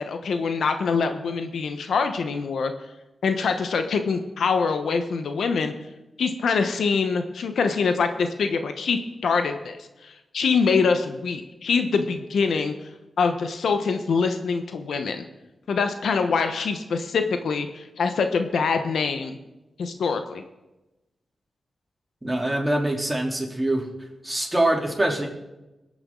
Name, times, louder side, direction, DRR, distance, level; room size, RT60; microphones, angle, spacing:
voice 1, 0.0-2.7 3.2-5.7 6.2-9.8 10.0-12.7 13.2-15.2 15.7-19.4 19.8-20.4, left 5 dB, 85° left, 7 dB, 1.0 m, -24 dB
voice 2, 22.2-23.9 24.2-25.3, right 1 dB, 15° right, -1 dB, 3.5 m, -24 dB
21.0 x 8.7 x 3.9 m, 1.0 s
cardioid pair, 50°, 0 cm